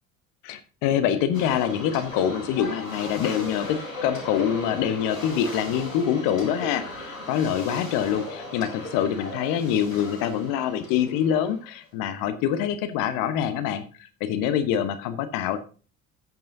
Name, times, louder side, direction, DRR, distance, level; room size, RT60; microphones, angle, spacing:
voice 1, 0.4-15.6, left 9 dB, 55° left, 11 dB, 1.2 m, -25 dB
sound 1, 1.3-11.8, left 2 dB, 85° left, 2.2 m, -37 dB
15.0 x 8.7 x 2.7 m, 0.36 s
figure-of-eight pair, 60°, 39 cm